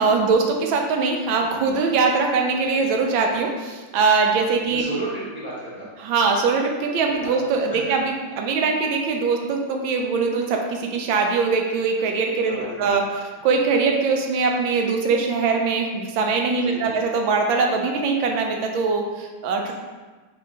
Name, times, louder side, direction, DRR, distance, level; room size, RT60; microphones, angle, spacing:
voice 1, 0.0-4.8 6.0-19.7, right 4 dB, 80° right, 2 dB, 1.3 m, -22 dB
voice 2, 4.7-5.9 7.1-7.3 7.7-7.8 12.5-13.2 16.6-17.0, right 1 dB, 10° right, -8 dB, 0.9 m, -33 dB
4.9 x 3.4 x 2.9 m, 1.3 s
omnidirectional pair, 2.2 m